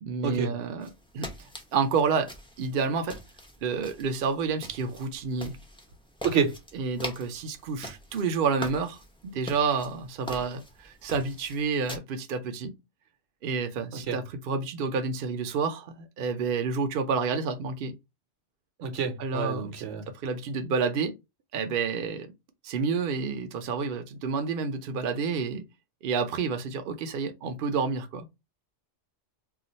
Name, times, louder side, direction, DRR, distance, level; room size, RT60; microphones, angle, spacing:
voice 1, 0.0-2.3 2.6-3.2 3.6-5.6 6.7-12.7 13.4-17.9 19.2-19.9 20.2-21.1 21.5-22.3 22.6-25.6 26.0-28.3, right 5 dB, 60° right, 0.7 m, -29 dB
sound 1, 0.8-12.0, equal, 5° left, 0.4 m, -44 dB
voice 2, 6.2-6.5 13.9-14.2 18.8-20.1, right 6 dB, 75° right, 1.0 m, -28 dB
2.4 x 2.2 x 4.0 m
omnidirectional pair, 1.2 m